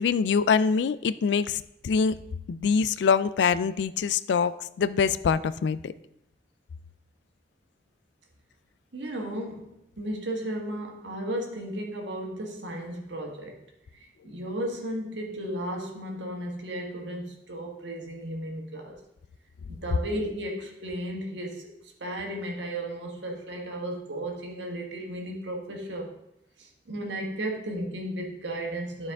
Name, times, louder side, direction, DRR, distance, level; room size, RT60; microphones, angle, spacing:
voice 1, 0.0-2.2 2.5-5.9, left 6 dB, 75° left, 16 dB, 0.3 m, -24 dB
voice 2, 8.9-13.6 13.9-19.0 19.7-26.1 26.6-29.1, right 1 dB, 85° right, 1 dB, 1.5 m, -34 dB
12.0 x 4.6 x 3.6 m, 0.82 s
head